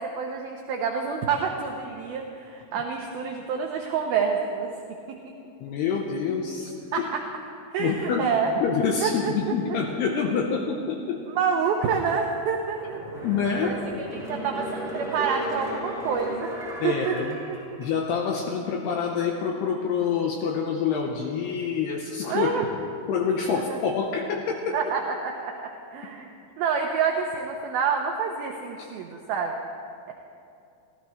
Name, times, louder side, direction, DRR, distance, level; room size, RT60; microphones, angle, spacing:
voice 1, 0.0-4.7 5.1-5.2 6.9-7.2 7.7-8.5 9.0-9.1 11.3-13.0 13.6-16.5 16.8-17.1 17.5-17.8 22.3-22.7 23.5-23.8 24.7-29.5, right 6 dB, 75° right, 1 dB, 2.2 m, -28 dB
voice 2, 5.6-7.1 7.8-8.3 8.6-11.2 13.2-13.7 16.8-17.4 17.8-22.5 23.1-24.8, left 6 dB, 75° left, 1 dB, 2.7 m, -27 dB
sound 1, 12.7-18.3 18.7-18.8, equal, ahead, 3.2 m, -36 dB
26.5 x 16.0 x 3.2 m, 2.5 s
omnidirectional pair, 5.4 m